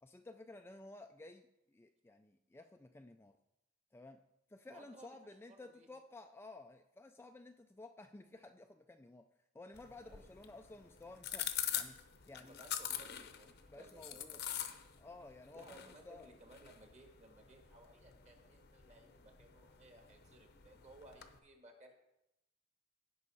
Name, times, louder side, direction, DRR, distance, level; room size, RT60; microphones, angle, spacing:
voice 1, 0.0-3.4 3.9-4.2 4.5-9.2 9.5-11.5 11.7-12.0 12.3-12.6 13.7-14.4 15.0-16.3, left 2 dB, 10° left, 5 dB, 0.3 m, -54 dB
voice 2, 4.7-5.2 5.5-5.9 10.0-10.3 12.4-14.4 15.5-21.9, right 1 dB, 35° right, 2 dB, 1.6 m, -60 dB
sound 1, 9.7-21.4, left 10 dB, 50° left, 0.7 m, -45 dB
16.0 x 5.5 x 4.1 m, 0.89 s
head